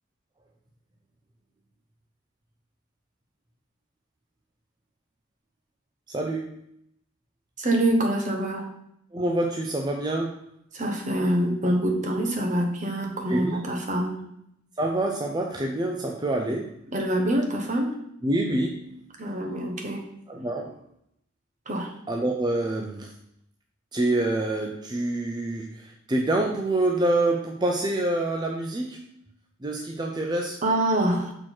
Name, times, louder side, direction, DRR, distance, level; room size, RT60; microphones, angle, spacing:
voice 1, 6.1-6.6 9.1-10.4 13.3-13.6 14.8-16.7 18.2-18.9 20.3-20.8 22.1-23.1 23.9-29.0 29.6-30.6, right 2 dB, 20° right, 1 dB, 0.5 m, -26 dB
voice 2, 7.6-8.7 10.7-14.2 16.9-18.0 19.2-20.0 21.7-21.9 30.6-31.3, right 1 dB, 40° right, 2 dB, 1.2 m, -25 dB
6.2 x 4.4 x 4.5 m, 0.75 s
head